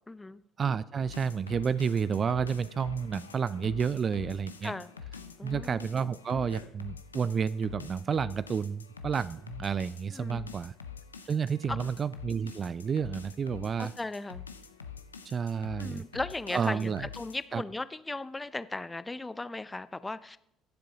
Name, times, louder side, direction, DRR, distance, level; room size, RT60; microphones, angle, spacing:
voice 1, 0.1-0.4 4.6-4.9 5.4-5.9 10.1-10.5 11.7-11.8 13.8-14.4 15.8-20.4, left 2 dB, 15° left, 15 dB, 0.5 m, -37 dB
voice 2, 0.6-4.7 5.4-10.7 11.3-13.9 15.3-16.0 16.5-17.1 17.5-17.6, right 6 dB, 40° right, 18 dB, 0.3 m, -30 dB
sound 1, 1.1-17.5, left 6 dB, 90° left, 0.5 m, -45 dB
18.0 x 7.5 x 2.9 m, 0.73 s
figure-of-eight pair, 55°, 0 cm